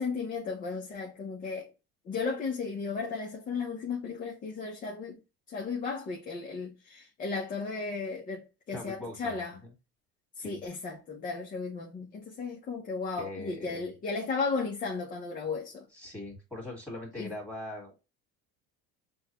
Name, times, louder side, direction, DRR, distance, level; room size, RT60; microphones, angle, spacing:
voice 1, 0.0-1.7 2.1-5.2 5.5-9.5 10.4-15.8 17.2-17.3, left 4 dB, 25° left, 0.7 m, -35 dB
voice 2, 8.7-9.7 10.4-10.6 13.2-13.9 15.9-18.0, left 2 dB, 5° left, 1.9 m, -41 dB
6.1 x 2.2 x 2.9 m
cardioid pair, 160°, 30 cm